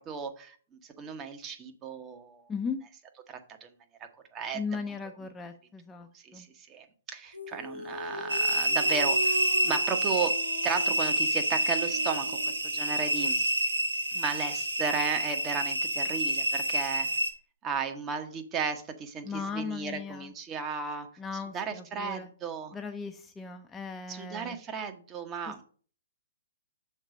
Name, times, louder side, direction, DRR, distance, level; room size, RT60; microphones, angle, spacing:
voice 1, 0.1-0.6 1.0-2.5 3.3-3.7 4.3-4.6 6.1-9.4 9.6-10.3 10.6-12.4 12.6-13.4 14.1-17.1 17.6-21.1 21.5-22.7 24.1-25.6, right 6 dB, 20° right, 6 dB, 1.0 m, -34 dB
voice 2, 2.5-2.8 4.5-6.5 19.2-20.3 21.2-22.3 22.7-24.6 25.5-25.6, left 5 dB, 10° left, 5 dB, 0.5 m, -37 dB
sound 1, 7.3-12.7, right 1 dB, 85° left, 1.1 m, -39 dB
sound 2, 8.3-17.3, right 1 dB, 75° right, 1.4 m, -28 dB
6.5 x 4.0 x 6.2 m, 0.43 s
figure-of-eight pair, 120°, 0 cm